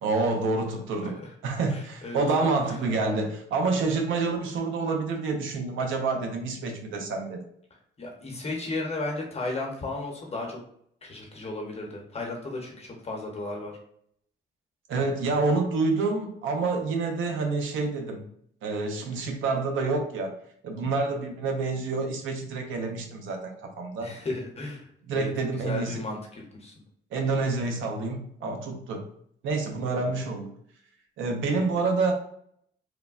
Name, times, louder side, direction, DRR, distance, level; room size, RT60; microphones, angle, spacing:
voice 1, 0.0-7.4 14.9-18.2 18.6-20.4 20.6-24.1 25.1-26.0 27.1-29.0 29.4-30.5 31.2-32.1, right 3 dB, 80° right, 4 dB, 0.6 m, -28 dB
voice 2, 1.7-2.2 2.7-2.8 8.0-10.6 11.0-13.7 24.0-26.7, left 2 dB, 30° left, 0 dB, 0.8 m, -35 dB
3.2 x 2.1 x 2.4 m, 0.69 s
cardioid pair, 90°, 20 cm